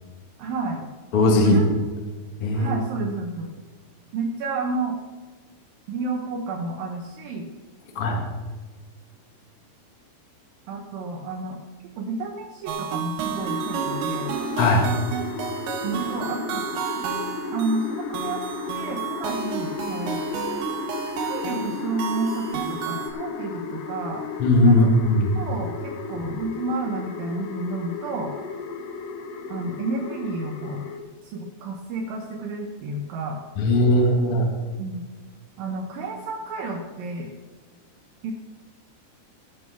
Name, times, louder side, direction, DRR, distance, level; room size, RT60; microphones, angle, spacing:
voice 1, 0.4-0.8 1.4-1.7 2.5-3.5 4.1-5.0 5.9-7.5 10.7-11.6 12.0-14.3 15.8-17.2 17.5-20.2 21.2-24.2 24.6-24.9 25.4-28.3 29.5-30.9 31.2-33.4 34.8-35.0 35.6-37.3 38.2-38.3, right 3 dB, 75° right, 0 dB, 2.1 m, -31 dB
voice 2, 1.1-1.6 2.4-2.7 8.0-8.2 14.6-14.9 24.4-25.3 26.2-26.3 33.6-34.5, left 1 dB, 50° left, 0 dB, 1.7 m, -18 dB
sound 1, 12.7-23.1, right 7 dB, 90° right, 3.9 m, -31 dB
sound 2, 13.4-31.0, left 4 dB, 80° left, 1.8 m, -34 dB
18.0 x 6.1 x 5.9 m, 1.4 s
omnidirectional pair, 5.6 m